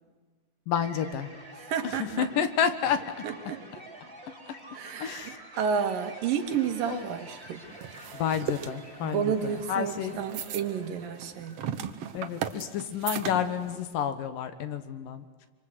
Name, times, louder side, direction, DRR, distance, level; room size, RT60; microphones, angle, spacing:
voice 1, 0.7-1.3 2.2-3.0 4.5-4.6 5.0-5.4 6.9-7.0 8.1-10.2 12.1-15.3, left 8 dB, 80° left, 10 dB, 3.1 m, -30 dB
sound 1, 0.7-11.9, right 1 dB, 20° right, 2.4 m, -48 dB
voice 2, 1.6-2.3 3.2-3.6 4.7-7.6 9.0-11.6, right 7 dB, 85° right, 6 dB, 3.3 m, -31 dB
sound 2, 6.5-13.8, right 9 dB, 60° right, 1.8 m, -38 dB
25.5 x 25.0 x 8.2 m, 1.4 s
omnidirectional pair, 3.8 m